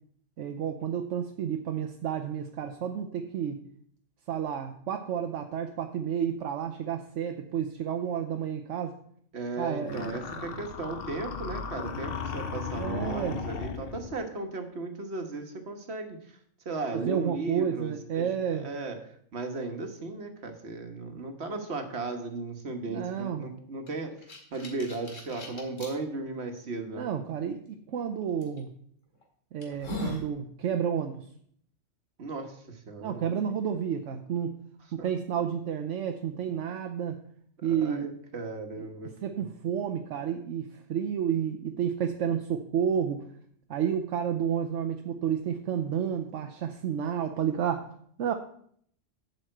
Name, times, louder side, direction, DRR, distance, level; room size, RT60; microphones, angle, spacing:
voice 1, 0.4-3.6 4.3-9.0 9.6-10.1 12.8-13.4 16.9-18.7 22.9-23.5 27.0-28.7 29.5-31.3 33.0-34.6 34.9-37.2 37.6-38.1 38.8-38.9 39.2-43.3 43.7-47.9 48.2-48.3, right 8 dB, 75° right, 6 dB, 1.0 m, -31 dB
voice 2, 9.3-16.4 16.6-27.1 32.2-33.6 35.0-35.1 37.6-39.1 39.4-39.5, right 3 dB, 60° right, 5 dB, 1.5 m, -36 dB
sound 1, 9.9-14.2, left 5 dB, 55° left, 1.0 m, -36 dB
sound 2, 23.9-25.9 26.6-26.7 28.4-28.6 29.1-29.2 29.6-30.3, left 1 dB, 85° left, 2.4 m, -38 dB
7.9 x 5.6 x 7.6 m, 0.64 s
omnidirectional pair, 1.3 m